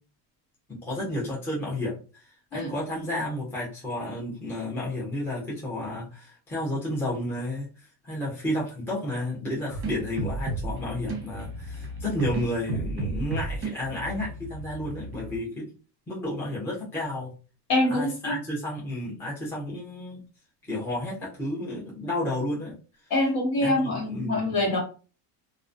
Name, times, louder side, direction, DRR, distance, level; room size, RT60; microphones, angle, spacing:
voice 1, 0.7-15.7 16.1-17.3 17.9-20.2 20.7-22.7 23.6-24.6, left 1 dB, 5° left, -6 dB, 0.5 m, -32 dB
sound 1, 9.7-15.4, right 2 dB, 30° right, 0.8 m, -34 dB
voice 2, 17.7-18.3 23.1-24.8, left 1 dB, 55° left, -2 dB, 1.4 m, -25 dB
2.3 x 2.2 x 2.4 m, 0.36 s
cardioid pair, 150°, 46 cm